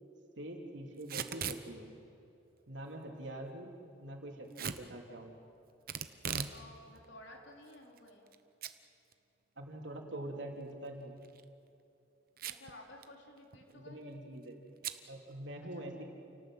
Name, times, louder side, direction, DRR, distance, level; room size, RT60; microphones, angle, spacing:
voice 1, 0.4-1.9 2.7-5.3 9.6-11.1 13.7-14.6 15.1-16.0, right 1 dB, 70° right, 1 dB, 3.3 m, -44 dB
Packing tape duct tape / Tearing, 1.0-1.6 4.6-4.8 5.9-6.6 7.0-7.1 7.7-8.4 8.6-8.7 9.1-9.2 11.2-11.4 12.4-12.7 13.0-13.1 13.4-13.7 14.8-15.0, right 7 dB, 50° right, 0.9 m, -39 dB
voice 2, 6.5-8.3 12.5-14.0 15.9-16.0, left 1 dB, 70° left, 1 dB, 3.9 m, -54 dB
29.0 x 18.5 x 7.8 m, 2.7 s
head